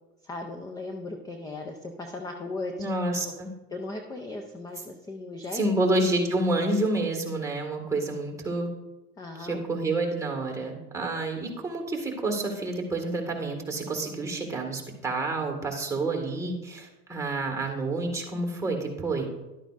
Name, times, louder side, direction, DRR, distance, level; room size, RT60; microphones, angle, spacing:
voice 1, 0.2-2.9 3.2-3.4 3.7-5.6 9.2-9.6, left 2 dB, 10° left, 4 dB, 0.4 m, -37 dB
voice 2, 2.8-3.5 5.5-8.7 9.4-19.3, right 2 dB, 5° right, 1 dB, 1.7 m, -29 dB
12.0 x 9.0 x 2.5 m, 1.1 s
hypercardioid pair, 115°, 46 cm